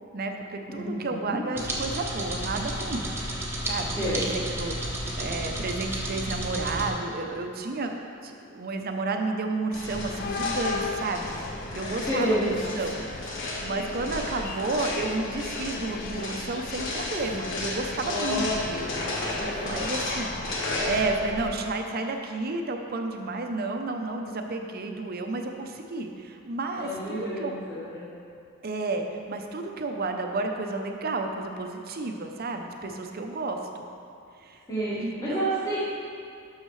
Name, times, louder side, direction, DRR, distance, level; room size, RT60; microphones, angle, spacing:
voice 1, 0.1-3.1 3.7-18.9 19.6-20.3 20.8-27.5 28.6-33.6 34.4-34.6 35.0-35.4, right 3 dB, 50° right, 4 dB, 0.6 m, -31 dB
voice 2, 0.7-1.4 4.0-4.3 12.0-12.5 18.0-19.1 19.6-19.7 26.8-28.0 34.7-35.8, right 1 dB, 15° left, -11 dB, 1.6 m, -29 dB
sound 1, 1.6-6.9, right 1 dB, 10° right, 1.0 m, -32 dB
sound 2, 9.7-21.6, left 1 dB, 60° left, 1.3 m, -34 dB
sound 3, 9.7-21.2, left 4 dB, 45° left, 0.3 m, -37 dB
12.0 x 6.5 x 3.2 m, 2.5 s
head